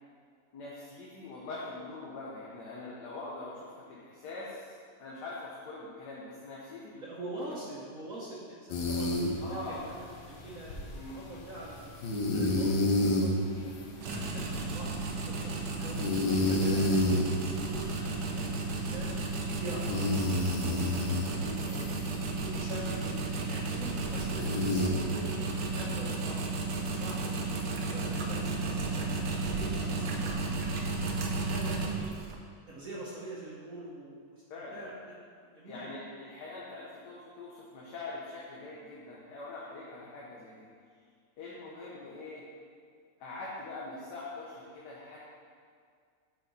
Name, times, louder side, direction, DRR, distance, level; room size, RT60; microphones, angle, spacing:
voice 1, 0.5-7.4 9.4-9.8 10.9-11.2 34.5-34.8 35.6-40.7 41.4-42.4 43.2-45.2, left 2 dB, 70° left, -5 dB, 1.5 m, -43 dB
voice 2, 6.9-10.0 10.3-11.9 12.3-13.8 14.0-16.0 16.3-19.2 19.6-21.9 22.3-23.2 23.4-25.5 25.7-26.5 27.0-29.1 29.4-32.1 32.7-35.1 35.4-35.9 40.0-40.1, right 2 dB, 55° right, -6 dB, 1.3 m, -44 dB
sound 1, 8.7-24.9, left 1 dB, 85° left, 1.6 m, -32 dB
sound 2, 14.0-32.4, right 3 dB, 80° right, 1.5 m, -33 dB
9.2 x 4.3 x 4.1 m, 2.2 s
omnidirectional pair, 1.9 m